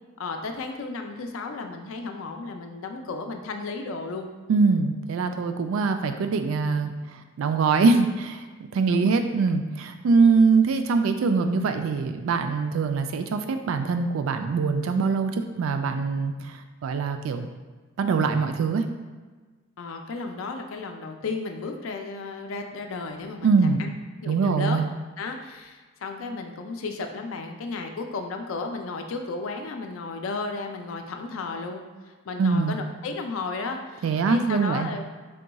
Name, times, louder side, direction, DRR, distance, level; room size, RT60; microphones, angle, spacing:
voice 1, 0.2-4.3 6.6-6.7 8.9-9.1 19.8-23.9 24.2-24.8 25.2-31.9 32.2-35.0, left 3 dB, 75° left, 5 dB, 0.4 m, -34 dB
voice 2, 4.5-6.9 7.4-17.5 18.0-18.8 23.4-23.9 24.3-24.8 32.4-32.8 34.0-34.9, right 4 dB, 75° right, 7 dB, 0.3 m, -23 dB
3.6 x 2.3 x 3.9 m, 1.4 s
head